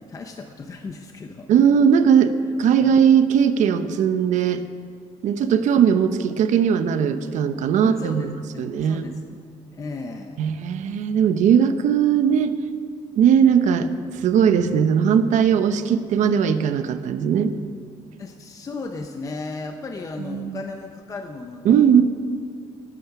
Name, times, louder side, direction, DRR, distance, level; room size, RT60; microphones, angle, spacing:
voice 1, 0.0-1.5 2.8-3.0 7.8-9.5 9.7-10.4 18.2-22.0, left 3 dB, 25° left, 4 dB, 0.7 m, -35 dB
voice 2, 1.5-2.3 2.6-4.6 5.2-9.1 10.4-12.5 13.2-13.9 14.2-17.5 20.3-20.6 21.6-22.0, right 8 dB, 70° right, 10 dB, 0.9 m, -19 dB
20.0 x 9.0 x 6.0 m, 2.1 s
cardioid pair, 165°, 13 cm